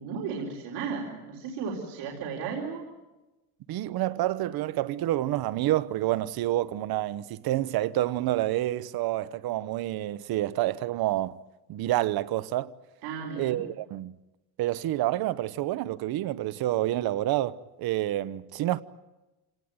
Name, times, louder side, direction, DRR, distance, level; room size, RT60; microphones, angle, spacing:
voice 1, 0.0-2.8 13.0-13.6, right 5 dB, 85° right, 4.3 m, -34 dB
voice 2, 3.7-11.4 11.7-12.7 13.4-14.1 14.6-18.8, right 15 dB, 65° right, 0.9 m, -28 dB
29.0 x 18.5 x 9.5 m
cardioid pair, 130°, 39 cm